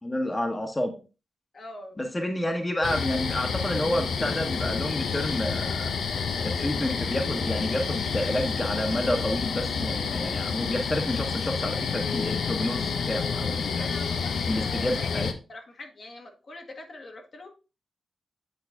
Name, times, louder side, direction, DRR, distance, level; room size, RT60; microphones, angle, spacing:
voice 1, 0.0-0.9 2.0-5.9 6.4-13.9 14.5-15.3, left 1 dB, 20° left, 4 dB, 1.1 m, -29 dB
voice 2, 1.5-2.0 13.8-15.2 15.5-17.5, left 2 dB, 55° left, 3 dB, 1.5 m, -42 dB
sound 1, 2.8-15.3, left 5 dB, 90° left, 0.7 m, -29 dB
8.5 x 4.0 x 3.6 m, 0.32 s
cardioid pair, 85°, 0 cm